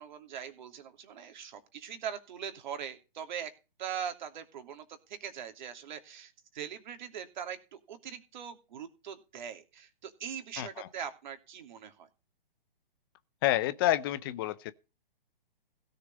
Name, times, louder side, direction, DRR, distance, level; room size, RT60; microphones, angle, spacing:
voice 1, 0.0-3.5 3.8-12.1, right 8 dB, 50° right, 3.0 m, -41 dB
voice 2, 10.6-10.9 13.4-14.7, left 14 dB, 25° left, 0.6 m, -29 dB
16.5 x 6.7 x 5.1 m
hypercardioid pair, 145°, 29 cm